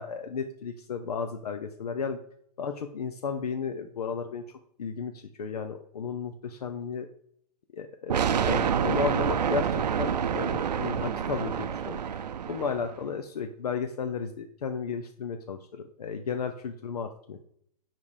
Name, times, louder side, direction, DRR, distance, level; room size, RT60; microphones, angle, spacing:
voice 1, 0.0-2.2 2.6-4.4 4.8-7.1 7.7-17.4, left 6 dB, 70° left, 6 dB, 0.8 m, -34 dB
sound 1, 8.1-13.0, right 8 dB, 80° right, 0.7 m, -28 dB
7.7 x 5.4 x 4.9 m, 0.68 s
hypercardioid pair, 175°, 21 cm